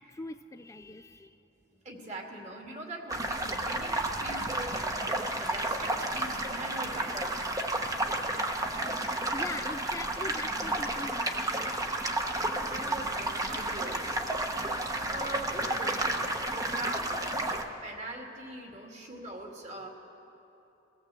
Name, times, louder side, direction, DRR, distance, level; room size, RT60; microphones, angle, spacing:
voice 1, 0.0-1.4 9.3-11.7, left 2 dB, 15° left, 8 dB, 0.4 m, -42 dB
voice 2, 1.8-7.3 12.3-14.8 15.0-19.9, right 1 dB, 40° right, 1 dB, 2.6 m, -42 dB
sound 1, 3.1-17.6, right 1 dB, 20° right, 1.1 m, -32 dB
sound 2, 6.1-13.3, right 1 dB, 75° right, 4.6 m, -55 dB
22.0 x 16.5 x 7.7 m, 3.0 s
head